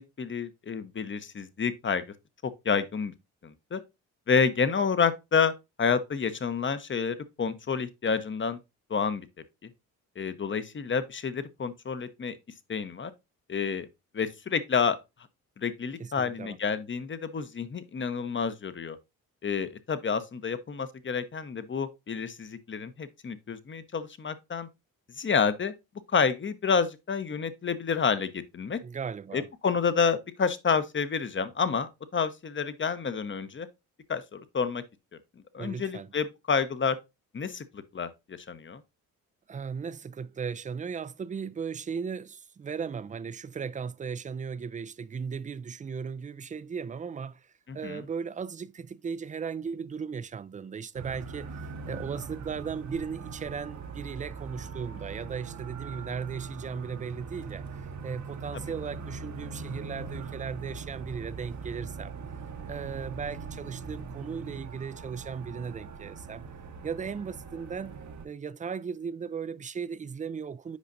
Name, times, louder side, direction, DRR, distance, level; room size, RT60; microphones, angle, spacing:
voice 1, 0.0-2.0 2.4-3.1 3.4-3.8 4.3-5.5 5.8-8.6 8.9-9.3 10.2-12.4 12.7-13.1 13.5-13.9 14.1-15.0 15.6-19.0 19.4-24.7 25.2-25.7 26.1-28.8 29.3-33.7 34.1-34.8 35.5-37.0 37.3-38.8 47.7-48.0 58.5-58.6, left 6 dB, 30° left, 0.8 m, -29 dB
voice 2, 16.0-16.6 28.8-29.5 35.6-36.1 39.5-62.1 62.7-66.5 66.8-68.0 68.2-70.8, right 6 dB, 20° right, 0.4 m, -37 dB
sound 1, 50.9-68.2, right 5 dB, 50° right, 1.0 m, -41 dB
8.3 x 5.0 x 2.6 m
supercardioid pair, 55°, 37 cm